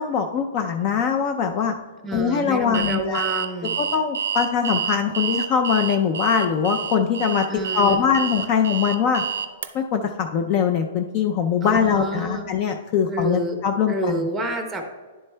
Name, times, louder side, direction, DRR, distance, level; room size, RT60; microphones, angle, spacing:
voice 1, 0.0-1.7 2.1-3.2 3.8-7.5 7.7-9.2 9.7-14.2, left 7 dB, 30° left, 5 dB, 0.4 m, -22 dB
voice 2, 2.0-3.8 7.5-8.1 11.6-12.5 13.1-13.6 13.9-14.9, right 1 dB, 5° right, 4 dB, 0.6 m, -28 dB
Alarm, 2.7-9.7, right 7 dB, 80° right, 0.6 m, -28 dB
10.5 x 7.6 x 2.2 m, 1.3 s
hypercardioid pair, 170°, 0 cm